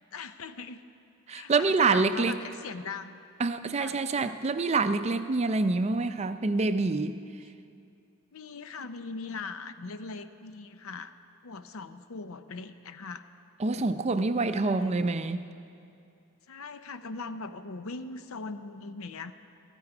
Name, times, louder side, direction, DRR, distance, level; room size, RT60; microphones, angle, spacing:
voice 1, 0.1-0.8 1.3-3.2 3.8-4.4 8.3-11.1 11.4-13.2 14.6-15.0 16.5-19.3, left 4 dB, 75° left, 11 dB, 0.6 m, -40 dB
voice 2, 1.3-2.4 3.4-7.2 13.6-15.5, right 3 dB, 30° right, 11 dB, 0.4 m, -26 dB
15.5 x 13.0 x 4.9 m, 2.5 s
head